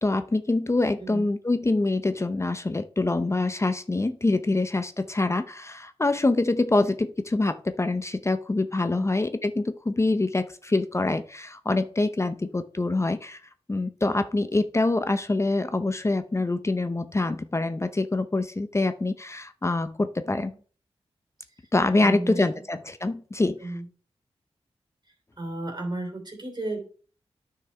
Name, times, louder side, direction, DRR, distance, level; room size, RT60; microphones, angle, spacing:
voice 1, 0.0-13.4 13.7-20.5 21.7-23.6, left 2 dB, 25° left, 10 dB, 0.6 m, -25 dB
voice 2, 1.0-1.3 8.9-9.0 20.2-20.6 21.6-21.7 22.0-22.6 23.6-23.9 25.4-26.8, right 2 dB, 40° right, 1 dB, 3.0 m, -34 dB
9.8 x 5.7 x 3.4 m, 0.42 s
cardioid pair, 50°, 11 cm